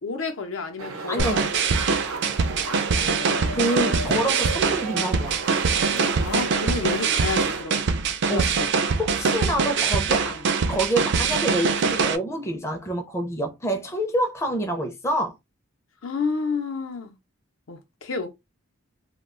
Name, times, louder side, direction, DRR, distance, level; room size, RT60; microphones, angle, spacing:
voice 1, 0.0-2.0 3.1-3.4 5.9-7.8 8.3-8.7 10.3-10.4 16.0-17.1 17.7-18.3, left 4 dB, 75° left, 0.7 m, -31 dB
sound 1, 0.8-7.6, right 2 dB, 85° right, 0.7 m, -34 dB
voice 2, 1.1-1.5 3.5-5.4 8.3-8.5 9.0-10.4 10.7-15.4, right 1 dB, 15° left, 0.4 m, -27 dB
sound 2, 1.2-12.2, right 5 dB, 55° right, 0.4 m, -23 dB
2.3 x 2.2 x 3.6 m
head